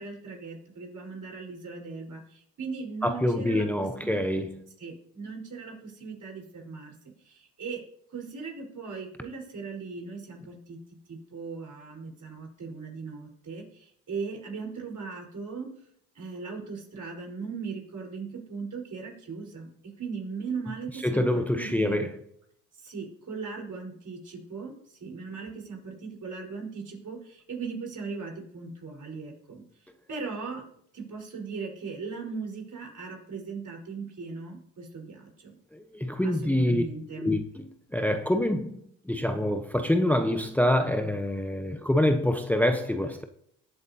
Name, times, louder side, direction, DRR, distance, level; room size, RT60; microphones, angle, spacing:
voice 1, 0.0-4.2 4.8-6.9 7.2-7.8 8.1-10.8 11.1-15.7 16.1-22.0 22.7-29.6 30.1-30.7 30.9-35.5 36.2-37.4, right 4 dB, 50° right, 4.5 m, -38 dB
voice 2, 3.0-4.6 21.0-22.2 35.7-36.8 37.2-37.6 37.9-43.2, left 1 dB, 5° left, 0.8 m, -26 dB
19.5 x 8.0 x 2.8 m
supercardioid pair, 65°, 38 cm